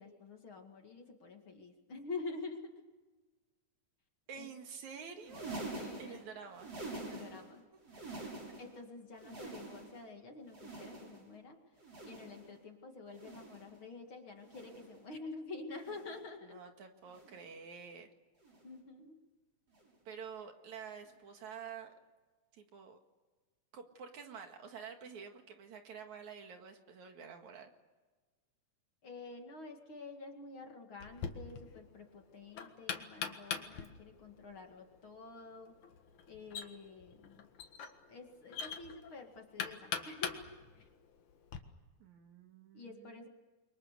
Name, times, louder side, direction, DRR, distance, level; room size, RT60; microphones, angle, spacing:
voice 1, 0.0-2.9 4.3-4.5 5.7-6.2 6.9-7.6 8.6-11.6 12.0-16.6 18.6-19.2 29.0-35.7 36.3-37.5 38.1-40.9 42.7-43.3, left 3 dB, 45° left, 3 dB, 2.7 m, -48 dB
voice 2, 4.3-5.6 6.0-6.8 7.1-7.2 8.2-8.5 16.5-18.1 20.1-22.0 22.5-23.0 23.7-27.7 42.0-43.3, right 6 dB, 65° right, 5 dB, 3.2 m, -49 dB
sound 1, 5.1-7.5 7.8-8.8 9.1-10.1 10.5-11.3 11.8-12.5 13.1-13.8 14.4-15.0 15.7-16.3 17.1-17.5 18.4-18.7 19.7-19.9 21.1-21.2, right 2 dB, 50° right, 7.3 m, -47 dB
Knock, 31.0-41.6, left 6 dB, 70° left, 3.0 m, -44 dB
30.0 x 24.0 x 6.8 m, 1.3 s
omnidirectional pair, 3.6 m